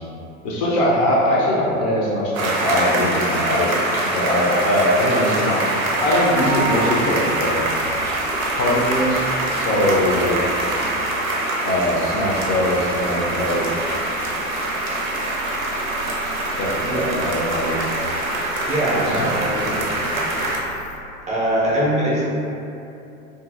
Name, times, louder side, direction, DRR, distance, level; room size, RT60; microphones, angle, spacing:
voice 1, 0.4-3.7 4.0-7.7 8.5-9.3 9.5-10.5 11.6-13.7 16.6-17.8 19.0-19.3 19.6-20.2, left 1 dB, 40° left, -4 dB, 0.5 m, -21 dB
sound 1, 2.3-20.6, right 1 dB, 80° right, 0.6 m, -24 dB
sound 2, 5.6-21.0, right 1 dB, 90° left, 0.7 m, -42 dB
voice 2, 16.8-17.2 18.7-19.7 21.3-22.2, right 1 dB, 15° right, -7 dB, 0.5 m, -22 dB
2.6 x 2.5 x 2.4 m, 2.7 s
figure-of-eight pair, 75°, 41 cm